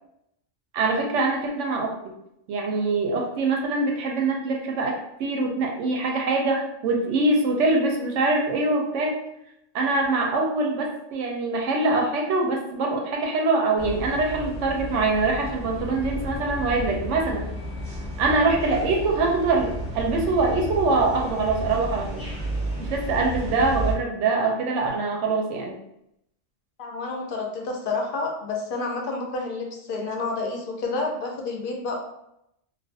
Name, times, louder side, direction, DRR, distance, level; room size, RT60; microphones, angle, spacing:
voice 1, 0.7-1.9 2.5-4.9 5.2-9.1 9.7-17.5 18.2-22.2 22.8-25.8, right 3 dB, 85° right, 1 dB, 0.9 m, -24 dB
sound 1, 13.8-23.9, equal, 5° left, 0.8 m, -32 dB
voice 2, 26.8-32.0, left 3 dB, 60° left, 1 dB, 0.6 m, -29 dB
2.4 x 2.1 x 2.6 m, 0.80 s
omnidirectional pair, 1.2 m